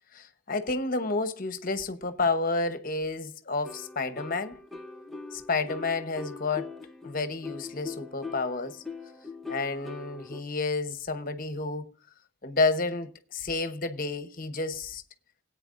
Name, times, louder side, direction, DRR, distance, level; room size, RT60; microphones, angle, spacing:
voice 1, 0.1-4.6 5.3-6.7 7.0-8.8 9.5-11.9 12.4-15.0, left 3 dB, 40° left, 0.9 m, -30 dB
sound 1, 3.6-10.4, left 4 dB, ahead, 0.8 m, -42 dB
20.0 x 8.9 x 2.5 m
head